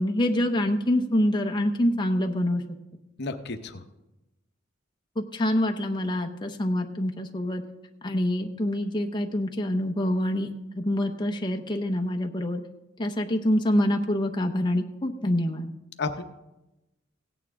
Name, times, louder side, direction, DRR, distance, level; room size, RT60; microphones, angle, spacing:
voice 1, 0.0-2.6 5.2-7.6 8.0-10.5 10.8-12.6 13.0-15.7, left 1 dB, 25° left, 3 dB, 0.8 m, -26 dB
voice 2, 3.2-3.8 16.0-16.2, left 3 dB, 60° left, 6 dB, 0.8 m, -31 dB
16.5 x 9.1 x 3.6 m, 0.96 s
head